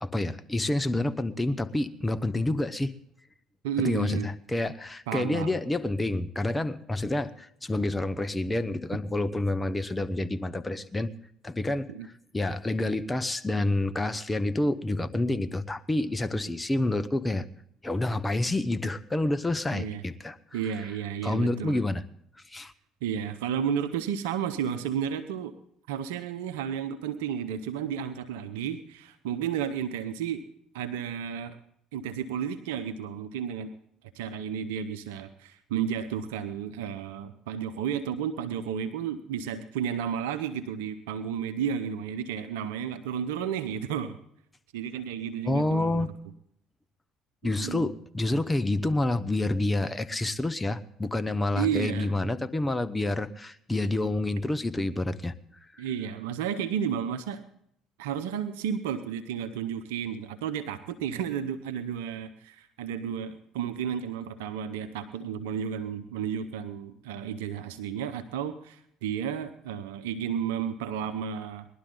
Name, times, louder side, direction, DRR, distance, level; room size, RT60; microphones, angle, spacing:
voice 1, 0.0-2.9 3.8-11.1 11.4-17.4 17.8-20.6 21.2-22.0 22.5-22.7 45.4-46.1 47.4-55.3 55.7-55.8, left 2 dB, 15° left, 11 dB, 1.0 m, -28 dB
voice 2, 3.6-4.3 5.1-5.6 11.9-12.1 19.7-20.0 20.5-21.8 23.0-25.5 25.9-30.4 30.7-31.6 31.9-33.7 34.1-44.2 44.7-46.1 47.4-47.9 51.5-52.1 55.8-57.4 58.0-71.7, right 8 dB, 80° right, 9 dB, 0.8 m, -32 dB
20.0 x 12.0 x 3.9 m, 0.70 s
hypercardioid pair, 60°, 0 cm